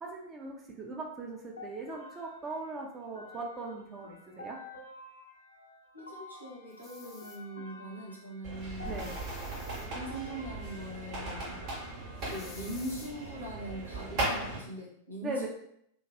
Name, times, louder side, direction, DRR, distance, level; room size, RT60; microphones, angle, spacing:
voice 1, 0.0-4.6 8.8-9.2 15.2-15.5, right 3 dB, 25° right, 0 dB, 0.5 m, -39 dB
sound 1, 1.6-12.9, left 2 dB, 85° left, 0.6 m, -51 dB
voice 2, 5.9-9.0 9.8-11.6 12.3-15.5, right 1 dB, 85° right, -4 dB, 0.9 m, -41 dB
sound 2, 6.7-7.4 8.9-9.9 12.2-13.1, left 4 dB, 25° left, 0.5 m, -52 dB
sound 3, 8.4-14.6, right 2 dB, 40° right, 1.3 m, -38 dB
2.7 x 2.5 x 2.9 m, 0.72 s
figure-of-eight pair, 90°, 0 cm